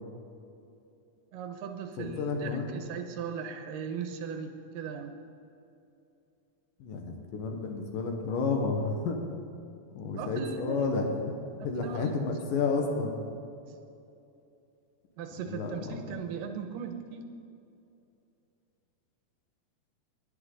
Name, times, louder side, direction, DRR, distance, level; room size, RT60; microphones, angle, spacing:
voice 1, 1.3-5.1 10.2-10.9 11.4-12.1 15.2-17.3, right 7 dB, 90° right, 6 dB, 2.6 m, -38 dB
voice 2, 2.0-2.7 6.8-9.2 9.9-11.1 11.6-13.2 15.5-16.0, left 4 dB, 80° left, 2 dB, 3.1 m, -31 dB
18.0 x 10.0 x 4.0 m, 2.7 s
omnidirectional pair, 3.9 m